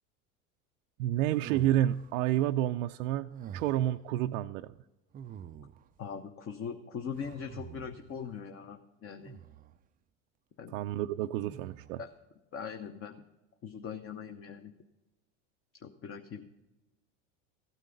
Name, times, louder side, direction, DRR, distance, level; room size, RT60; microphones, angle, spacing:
voice 1, 1.0-4.7 10.7-12.0, right 13 dB, 85° right, 6 dB, 0.5 m, -30 dB
sound 1, 1.2-2.2 3.3-4.0 5.1-6.0 7.1-8.2 9.2-9.8 11.4-12.1, right 8 dB, 25° right, 0.3 m, -46 dB
voice 2, 6.0-9.4 10.6-10.8 12.0-12.1 12.5-13.2 13.6-14.7 15.7-16.5, left 7 dB, 35° left, 6 dB, 0.8 m, -41 dB
15.0 x 9.2 x 3.9 m, 1.0 s
supercardioid pair, 105°, 38 cm